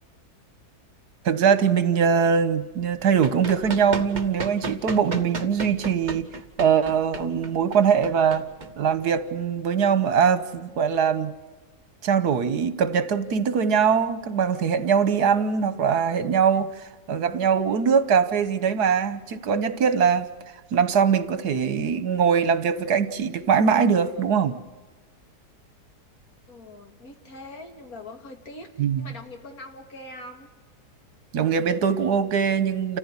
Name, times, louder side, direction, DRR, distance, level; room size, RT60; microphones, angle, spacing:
voice 1, 1.2-6.3 6.6-8.5 8.8-11.3 12.0-16.7 17.1-20.3 20.7-24.6 28.8-29.0 31.3-33.0, right 7 dB, 75° right, 13 dB, 1.6 m, -22 dB
Run, 3.0-9.3, right 3 dB, 30° right, 1.5 m, -35 dB
voice 2, 26.5-30.5, left 2 dB, 60° left, 4 dB, 2.7 m, -42 dB
29.0 x 15.0 x 9.8 m, 1.3 s
omnidirectional pair, 1.7 m